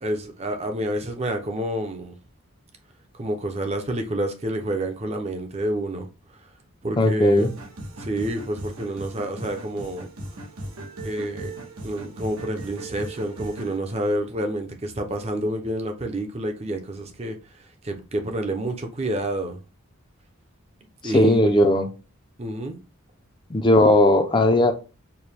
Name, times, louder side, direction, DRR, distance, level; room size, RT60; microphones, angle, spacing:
voice 1, 0.0-2.1 3.1-6.1 6.8-7.5 8.0-10.1 11.0-11.5 11.8-19.6 21.0-21.7 22.4-22.8, right 1 dB, 30° right, 0.6 m, -29 dB
voice 2, 7.0-7.5 21.0-21.9 23.5-24.7, left 1 dB, 20° left, 0.5 m, -17 dB
sound 1, 7.4-13.8, right 1 dB, 85° right, 1.0 m, -38 dB
4.6 x 2.2 x 3.4 m
head